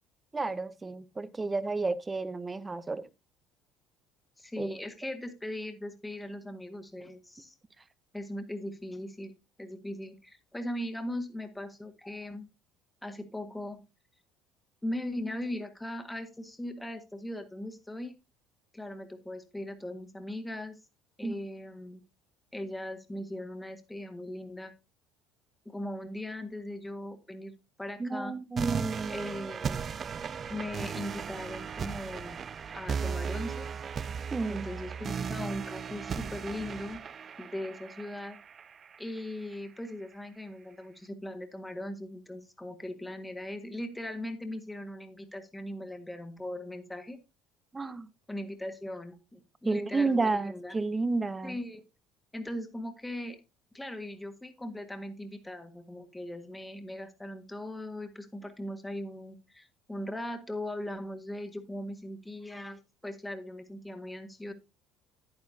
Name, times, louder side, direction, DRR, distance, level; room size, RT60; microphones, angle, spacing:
voice 1, 0.3-3.0 4.6-4.8 21.2-21.3 28.0-29.3 34.3-34.7 47.7-48.1 49.6-51.6, right 3 dB, 20° right, 0.9 m, -31 dB
voice 2, 4.4-7.5 8.1-9.3 9.6-12.4 13.0-13.8 14.8-18.1 18.7-20.8 21.2-22.0 22.5-24.7 25.6-27.5 27.8-28.4 29.1-29.8 30.5-32.4 32.7-33.7 34.5-37.0 37.4-38.4 39.0-47.2 48.3-50.7 51.4-51.8 52.3-53.4 53.7-64.5, left 1 dB, 10° left, 1.7 m, -39 dB
sound 1, 28.6-39.5, right 6 dB, 40° right, 0.4 m, -36 dB
10.5 x 9.6 x 2.7 m
hypercardioid pair, 75°, 0 cm